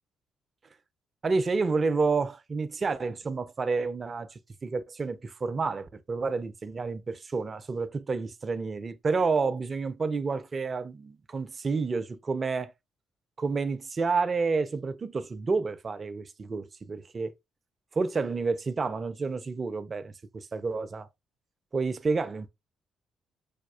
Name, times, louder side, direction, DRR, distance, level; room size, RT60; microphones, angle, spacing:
voice 1, 1.2-12.7 13.4-17.3 17.9-21.1 21.7-22.5, right 4 dB, 40° right, 0.4 m, -29 dB
4.9 x 2.3 x 2.2 m
figure-of-eight pair, 45°, 0 cm